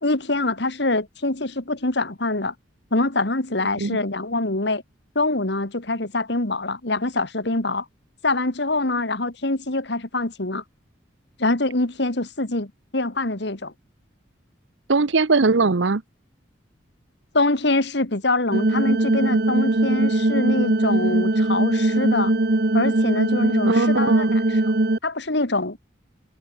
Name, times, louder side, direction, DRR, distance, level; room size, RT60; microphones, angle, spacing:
voice 1, 0.0-2.5 2.9-4.8 5.2-7.9 8.2-10.6 11.4-13.7 17.3-22.3 22.7-24.7 25.0-25.8, left 2 dB, 60° left, 2.0 m, -24 dB
voice 2, 14.9-16.0 23.7-24.4, right 3 dB, 75° right, 0.8 m, -20 dB
sound 1, 18.5-25.0, right 2 dB, 55° right, 1.2 m, -20 dB
head